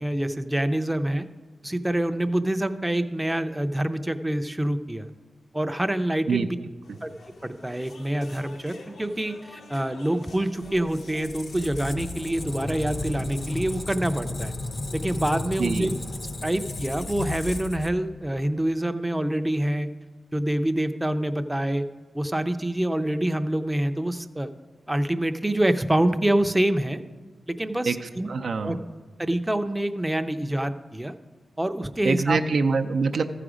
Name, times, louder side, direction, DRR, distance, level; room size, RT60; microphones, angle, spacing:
voice 1, 0.0-1.3 1.6-5.1 5.5-6.6 7.0-7.1 7.4-14.5 14.9-15.9 16.4-19.9 20.3-21.8 22.1-24.5 24.9-27.0 27.5-28.3 28.6-28.8 29.2-31.1 31.6-32.4, right 1 dB, 10° right, 8 dB, 0.5 m, -26 dB
sound 1, 6.8-13.6, left 3 dB, 80° left, 0.9 m, -47 dB
Squeak, 10.7-18.4, left 2 dB, 50° left, 0.7 m, -34 dB
voice 2, 28.3-28.8 32.0-33.2, right 4 dB, 75° right, 6 dB, 0.5 m, -24 dB
14.0 x 5.0 x 4.9 m, 1.4 s
cardioid pair, 55°, 0 cm